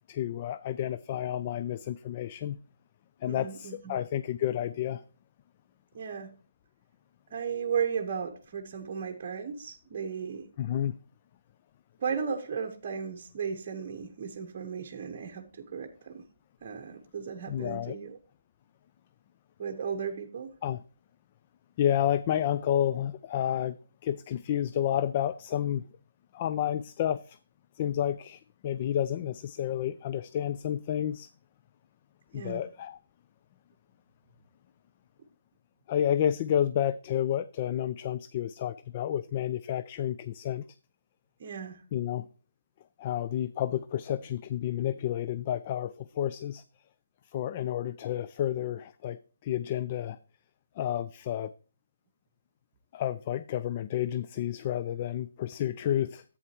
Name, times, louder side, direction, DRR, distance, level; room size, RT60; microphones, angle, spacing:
voice 1, 0.1-2.6 3.2-5.0 10.6-11.0 17.5-18.0 20.6-20.8 21.8-23.8 24.0-25.8 26.3-27.4 27.8-31.3 32.3-33.0 35.9-40.6 41.9-42.3 43.0-46.6 47.3-50.2 50.8-51.5 52.9-56.2, left 10 dB, 30° left, 0.3 m, -30 dB
voice 2, 3.3-4.0 5.9-6.3 7.3-10.4 12.0-16.2 16.6-18.2 19.6-20.5 32.3-32.7 41.4-41.8, right 6 dB, 35° right, 1.0 m, -35 dB
11.0 x 8.5 x 2.9 m
hypercardioid pair, 160°, 0 cm